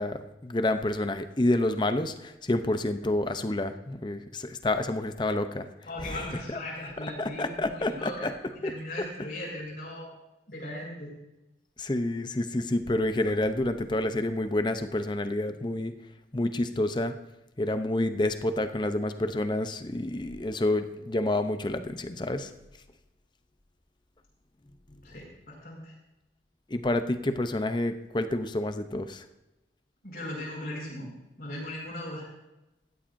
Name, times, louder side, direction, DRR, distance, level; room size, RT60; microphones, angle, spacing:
voice 1, 0.0-5.7 6.0-6.2 6.5-6.6 7.2-8.3 8.6-8.7 11.8-15.9 16.3-17.2 17.6-22.5 26.7-29.2, left 1 dB, 25° left, 9 dB, 0.6 m, -28 dB
voice 2, 5.9-10.1 10.5-11.1 25.0-25.9 30.0-32.3, left 1 dB, 55° left, -3 dB, 5.2 m, -38 dB
16.5 x 13.0 x 2.6 m, 0.96 s
head